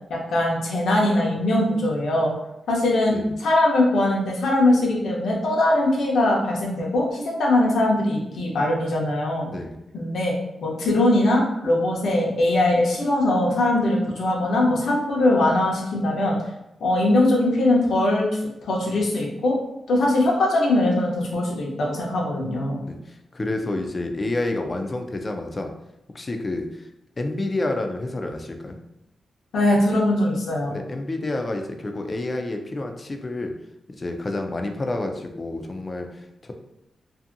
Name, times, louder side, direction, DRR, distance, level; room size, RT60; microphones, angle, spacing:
voice 1, 0.1-2.3 2.7-9.5 9.9-10.3 10.6-16.4 16.8-19.6 19.9-22.8 29.5-30.8, left 1 dB, 75° left, -2 dB, 0.7 m, -21 dB
voice 2, 9.5-9.8 22.8-25.7 26.1-26.8 27.2-28.8 30.7-33.5 33.9-36.6, left 2 dB, 25° left, 4 dB, 0.3 m, -29 dB
2.7 x 2.5 x 2.5 m, 0.88 s
wide cardioid pair, 145°, 0 cm